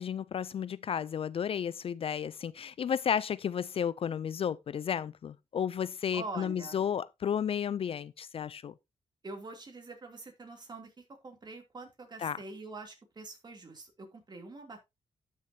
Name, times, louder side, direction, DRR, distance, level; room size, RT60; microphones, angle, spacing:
voice 1, 0.0-8.7 12.2-12.4, left 8 dB, 50° left, 0.4 m, -33 dB
voice 2, 6.1-6.8 9.2-10.9 11.2-14.8, right 3 dB, 35° right, 2.9 m, -45 dB
12.5 x 6.4 x 2.8 m
cardioid pair, 95°, 12 cm